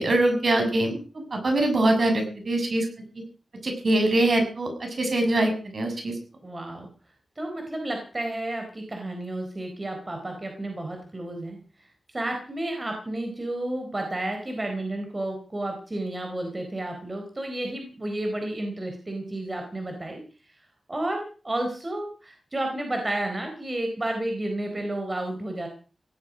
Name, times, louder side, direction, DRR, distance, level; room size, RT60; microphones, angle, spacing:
voice 1, 0.0-2.9 3.6-6.1, right 1 dB, 55° right, 4 dB, 6.7 m, -23 dB
voice 2, 6.4-6.9 7.4-11.6 12.1-20.2 20.9-25.7, right 1 dB, 25° right, 3 dB, 4.2 m, -31 dB
17.5 x 16.0 x 5.2 m, 0.39 s
wide cardioid pair, 110°, 0 cm